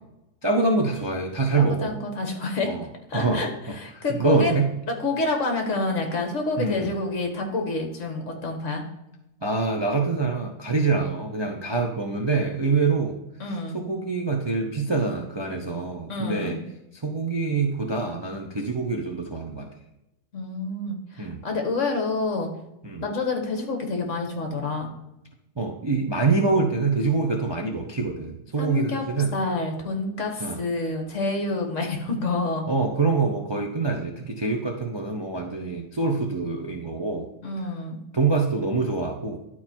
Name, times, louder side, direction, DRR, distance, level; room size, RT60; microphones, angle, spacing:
voice 1, 0.4-1.9 2.6-2.8 3.1-3.8 4.1-4.7 6.6-6.9 9.4-13.2 13.5-16.6 16.9-19.7 21.2-21.4 22.8-23.0 25.6-29.3 30.4-30.6 32.7-37.3 38.1-39.4, right 4 dB, 25° right, 1 dB, 0.6 m, -25 dB
voice 2, 1.5-2.7 3.1-3.5 3.8-4.5 4.9-8.8 13.4-13.8 16.1-16.6 20.3-22.5 23.0-24.9 28.6-29.0 29.3-32.6 37.4-38.0, left 3 dB, 55° left, 3 dB, 1.8 m, -28 dB
11.5 x 4.4 x 4.5 m, 0.88 s
omnidirectional pair, 1.6 m